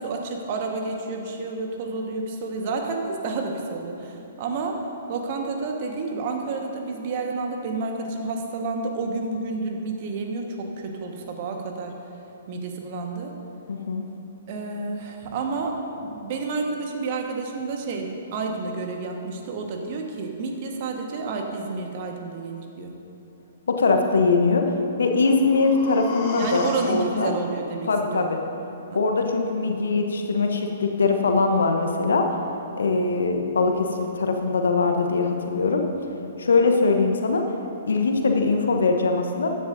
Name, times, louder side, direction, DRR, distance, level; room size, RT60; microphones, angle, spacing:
voice 1, 0.0-4.8 5.1-12.0 12.5-13.3 14.5-22.9 26.3-28.4 28.9-29.0, right 3 dB, 45° right, 2 dB, 1.4 m, -30 dB
voice 2, 13.7-14.1 23.7-24.6 25.0-27.3 27.9-28.4 28.9-32.3 32.8-35.8 36.4-37.4 37.9-39.5, left 4 dB, 70° left, 4 dB, 1.0 m, -22 dB
sound 1, 24.9-28.9 29.2-29.3, left 2 dB, 40° left, 1.4 m, -37 dB
15.0 x 10.5 x 2.7 m, 2.9 s
figure-of-eight pair, 120°, 0 cm